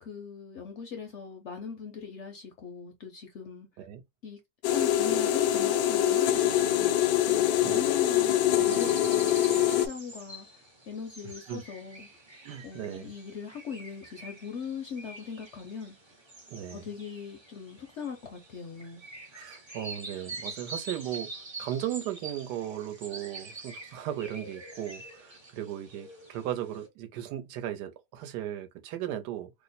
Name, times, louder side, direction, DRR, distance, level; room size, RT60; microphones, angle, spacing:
voice 1, 0.0-3.7 4.2-4.4 4.7-12.1 12.6-16.0 16.7-19.0, left 6 dB, 65° left, 0.7 m, -40 dB
sound 1, 4.6-9.9, left 11 dB, 80° left, 1.2 m, -24 dB
voice 2, 7.6-7.9 8.5-9.0 11.5-11.6 12.4-13.1 16.5-16.9 19.3-29.5, right 11 dB, 90° right, 1.2 m, -37 dB
sound 2, 8.6-26.9, right 2 dB, 45° right, 0.3 m, -46 dB
2.9 x 2.0 x 4.0 m
omnidirectional pair, 1.8 m